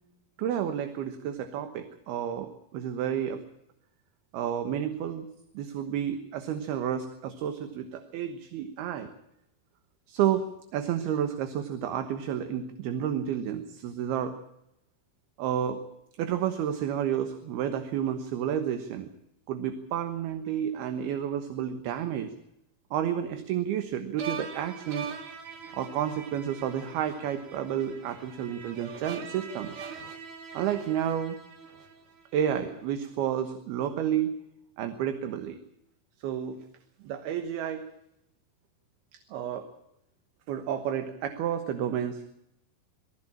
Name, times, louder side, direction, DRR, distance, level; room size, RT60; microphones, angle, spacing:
voice 1, 0.4-3.4 4.3-5.3 5.5-9.1 10.1-10.4 10.7-14.3 15.4-15.8 16.2-19.1 19.5-22.3 22.9-25.1 25.7-29.7 30.5-31.4 32.3-34.3 34.8-35.6 36.2-36.6 37.0-37.9 39.1-39.7 40.5-42.2, right 9 dB, 75° right, 7 dB, 3.2 m, -30 dB
sound 1, 24.2-32.4, right 5 dB, 60° right, 2.7 m, -42 dB
21.0 x 16.0 x 8.8 m, 0.82 s
omnidirectional pair, 4.6 m